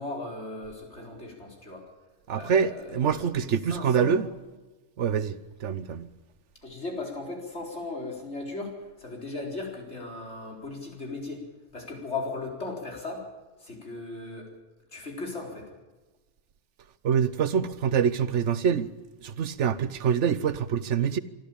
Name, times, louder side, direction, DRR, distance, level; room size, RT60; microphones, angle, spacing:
voice 1, 0.0-1.8 2.3-4.2 6.6-11.4 11.7-13.3 13.6-14.5 14.9-15.7, left 3 dB, 75° left, 4.6 m, -37 dB
voice 2, 2.3-4.3 5.0-6.1 17.0-18.9 19.2-21.2, right 7 dB, 85° right, 1.2 m, -25 dB
26.0 x 12.5 x 8.7 m
omnidirectional pair, 1.2 m